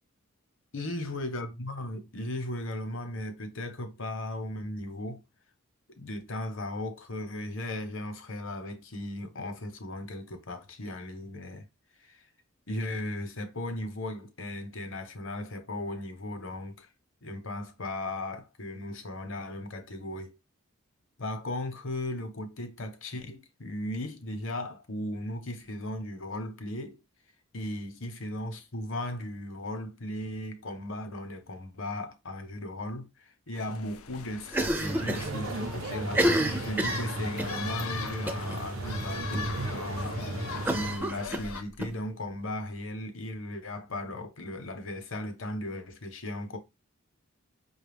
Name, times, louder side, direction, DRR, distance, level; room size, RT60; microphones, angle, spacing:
voice 1, 0.7-5.2 6.0-11.6 12.0-12.3 12.7-16.9 17.2-20.4 21.2-27.0 27.5-36.3 36.6-40.2 40.7-46.6, left 1 dB, 65° left, 0.8 m, -37 dB
sound 1, 33.5-41.6, left 6 dB, 85° left, 0.4 m, -41 dB
Cough, 34.5-35.3 35.6-35.7 36.1-37.6 38.3-38.6 38.9-39.0 39.3-39.4 40.6-41.9, right 1 dB, 10° right, 0.4 m, -29 dB
sound 2, 34.8-41.0, right 2 dB, 70° right, 0.7 m, -35 dB
5.2 x 2.3 x 3.4 m
head